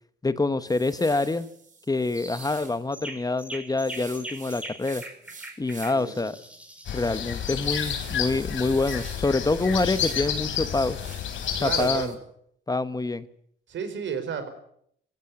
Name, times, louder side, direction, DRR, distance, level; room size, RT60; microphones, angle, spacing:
voice 1, 0.2-1.5 1.9-5.0 5.6-6.4 6.9-11.0 11.6-12.1 12.7-13.3, left 3 dB, 20° left, 12 dB, 1.2 m, -26 dB
sound 1, 0.7-2.8 3.8-6.1 6.5-6.6 7.1-10.3 10.6-12.1, right 4 dB, 40° right, 4.9 m, -47 dB
sound 2, 2.1-2.5 2.9-7.6, right 1 dB, 5° right, 4.8 m, -42 dB
voice 2, 5.9-6.3 11.6-12.2 13.7-14.5, right 6 dB, 70° right, 9 dB, 4.8 m, -31 dB
sound 3, 6.9-12.0, left 8 dB, 75° left, 3.7 m, -30 dB
19.0 x 17.0 x 9.5 m, 0.69 s
cardioid pair, 90°, 20 cm